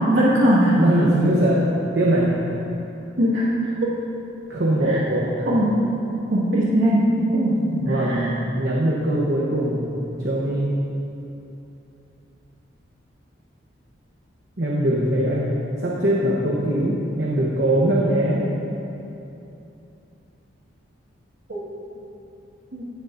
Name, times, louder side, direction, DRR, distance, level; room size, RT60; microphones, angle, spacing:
voice 1, 0.1-0.8 3.2-3.9 5.5-5.8 6.3-8.3 21.5-21.6 22.7-22.8, equal, 80° right, -8 dB, 1.8 m, -20 dB
voice 2, 0.7-1.7 1.9-2.4 4.5-5.3 7.7-9.8 10.2-10.7 14.6-15.5 15.8-18.5, right 1 dB, 55° right, -5 dB, 1.0 m, -21 dB
17.0 x 6.8 x 2.6 m, 2.9 s
head